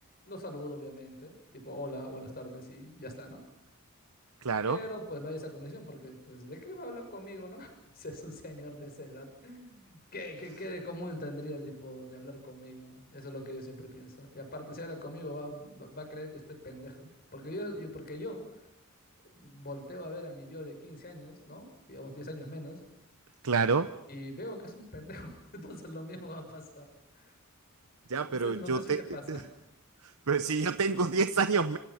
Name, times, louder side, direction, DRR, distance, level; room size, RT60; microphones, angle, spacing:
voice 1, 0.2-3.4 4.7-18.5 19.2-22.8 24.1-26.9 27.1-27.3 28.2-29.5, left 1 dB, 45° left, 6.4 m, -42 dB
voice 2, 4.4-4.8 23.4-23.9 28.1-29.0 29.3-29.4 30.0-31.8, right 4 dB, 75° right, 0.9 m, -28 dB
27.0 x 26.0 x 5.8 m
head